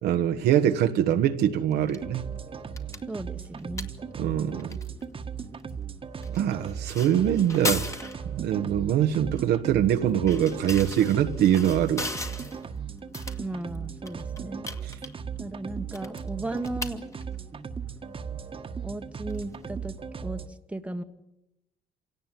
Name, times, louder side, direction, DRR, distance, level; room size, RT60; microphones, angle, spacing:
voice 1, 0.0-2.3 4.2-4.7 6.3-7.9 8.3-12.1, right 10 dB, 75° right, 1.5 m, -23 dB
sound 1, 1.7-20.1, left 2 dB, 15° left, 2.0 m, -40 dB
sound 2, 2.0-20.5, right 6 dB, 30° right, 1.7 m, -37 dB
voice 2, 3.1-3.9 13.4-14.7 15.4-17.0 18.8-19.9 20.2-20.4 20.7-21.0, right 2 dB, 5° right, 1.5 m, -35 dB
27.5 x 18.0 x 9.3 m
cardioid pair, 110°, 17 cm